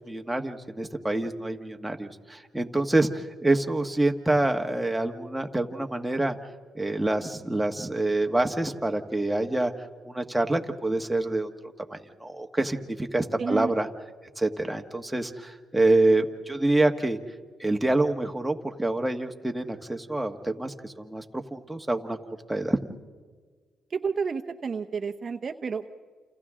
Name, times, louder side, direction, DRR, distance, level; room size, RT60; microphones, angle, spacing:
voice 1, 0.1-6.4 6.7-9.7 10.0-11.5 11.9-13.9 14.4-17.2 17.6-22.2 22.5-22.8, right 2 dB, 5° right, 3 dB, 1.5 m, -26 dB
voice 2, 13.4-13.8 23.9-25.9, right 5 dB, 40° right, 6 dB, 0.9 m, -30 dB
29.0 x 28.5 x 3.8 m, 1.5 s
cardioid pair, 90°, 0 cm